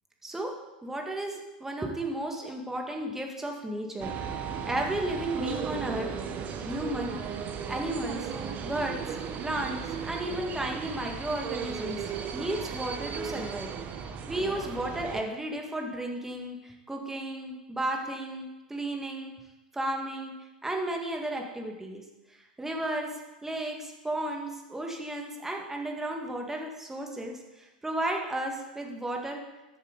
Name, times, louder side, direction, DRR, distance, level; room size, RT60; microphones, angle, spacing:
voice 1, 0.2-0.5 0.8-4.1 4.7-6.1 6.6-7.2 7.7-8.3 8.6-9.2 9.4-13.7 14.3-19.3 19.7-20.3 20.6-22.0 22.6-23.1 23.4-29.4, right 1 dB, 10° right, 1 dB, 1.9 m, -33 dB
sound 1, 4.0-15.2, right 7 dB, 35° right, 1.1 m, -36 dB
13.5 x 7.4 x 4.0 m, 1.1 s
hypercardioid pair, 95°, 5 cm